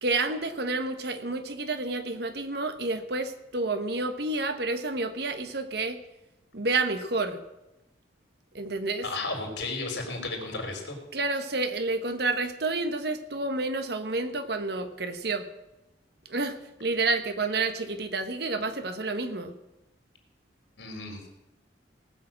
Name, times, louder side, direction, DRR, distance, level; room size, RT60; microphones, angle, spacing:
voice 1, 0.0-6.0 6.5-7.4 8.5-9.1 11.1-15.5 16.3-19.5, right 3 dB, 60° right, 9 dB, 1.2 m, -29 dB
voice 2, 9.0-11.0 20.8-21.3, left 3 dB, 85° left, 2 dB, 3.8 m, -34 dB
18.5 x 6.5 x 7.5 m, 0.96 s
head